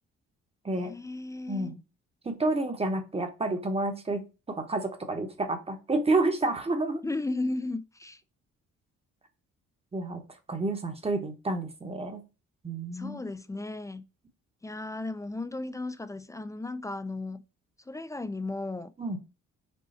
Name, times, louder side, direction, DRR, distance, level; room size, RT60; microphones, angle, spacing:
voice 1, 0.8-1.8 7.0-8.2 12.9-14.1 14.6-17.4 17.9-18.9, left 2 dB, 10° left, 0.3 m, -35 dB
voice 2, 1.5-1.8 2.2-4.2 4.5-7.0 9.9-10.2 10.5-12.2 12.6-13.2 19.0-19.2, right 2 dB, 20° right, 1.0 m, -29 dB
5.4 x 2.3 x 4.1 m
cardioid pair, 90°, 30 cm